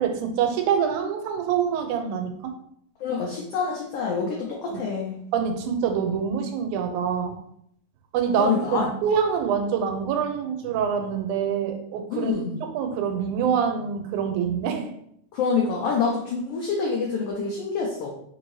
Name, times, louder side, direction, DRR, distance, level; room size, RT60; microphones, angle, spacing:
voice 1, 0.0-2.5 4.7-4.8 5.3-7.4 8.1-12.3 12.6-14.9, right 7 dB, 85° right, 6 dB, 2.1 m, -25 dB
voice 2, 3.0-5.2 8.4-8.8 12.1-12.6 15.3-18.1, left 5 dB, 85° left, -1 dB, 1.3 m, -26 dB
4.7 x 2.7 x 3.0 m, 0.70 s
omnidirectional pair, 3.4 m